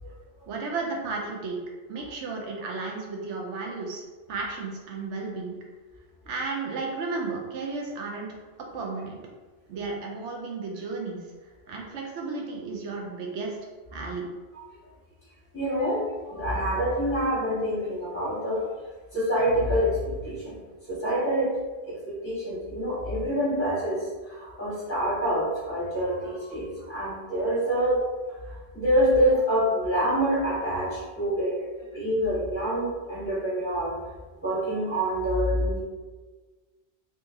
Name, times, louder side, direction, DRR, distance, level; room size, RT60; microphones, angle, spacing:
voice 1, 0.5-1.6 1.9-4.0 4.3-5.6 6.3-8.4 8.7-9.2 9.7-11.2 11.7-13.6 13.9-14.3, right 4 dB, 85° right, 0 dB, 0.9 m, -33 dB
voice 2, 15.5-18.7 19.1-20.6 20.9-21.5 21.9-28.1 28.4-31.7 31.9-33.9 34.4-35.8, equal, 15° left, -9 dB, 0.8 m, -26 dB
2.9 x 2.7 x 3.4 m, 1.3 s
omnidirectional pair, 1.2 m